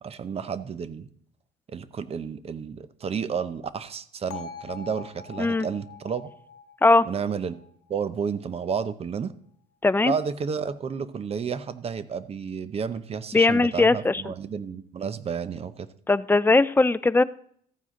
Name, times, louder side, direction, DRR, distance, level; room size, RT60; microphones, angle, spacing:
voice 1, 0.0-1.1 1.7-6.3 7.0-7.6 7.9-9.3 10.0-15.9, right 6 dB, 35° right, 14 dB, 0.8 m, -31 dB
Bell, 4.3-8.4, left 7 dB, 70° left, 1.2 m, -44 dB
voice 2, 9.8-10.1 13.3-14.2 16.1-17.2, left 3 dB, 10° left, 16 dB, 0.4 m, -19 dB
14.0 x 9.4 x 3.8 m, 0.63 s
cardioid pair, 110°, 17 cm